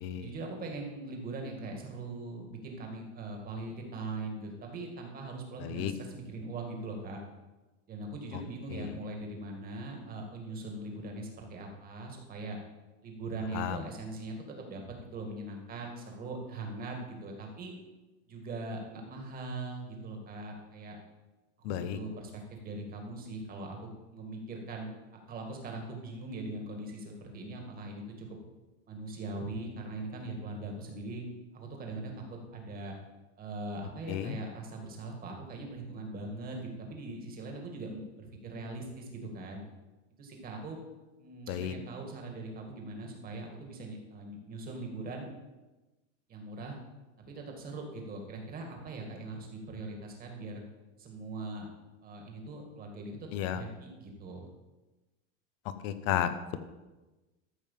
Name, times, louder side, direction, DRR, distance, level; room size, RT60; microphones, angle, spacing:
voice 1, 0.1-7.2 7.9-12.6 13.0-14.8 15.1-17.7 18.3-21.0 21.6-24.9 25.3-28.3 28.9-31.2 31.5-32.9 33.4-39.6 40.2-40.8 41.2-45.3 46.3-46.8 47.2-50.6 51.0-51.7 52.0-54.5, right 2 dB, 25° right, 2 dB, 2.1 m, -41 dB
voice 2, 5.6-5.9 13.5-13.8 21.6-22.0 34.1-34.4 41.5-41.7 53.3-53.6 55.8-56.6, left 10 dB, 45° left, 11 dB, 0.9 m, -32 dB
13.5 x 5.5 x 7.3 m, 1.1 s
supercardioid pair, 160°, 37 cm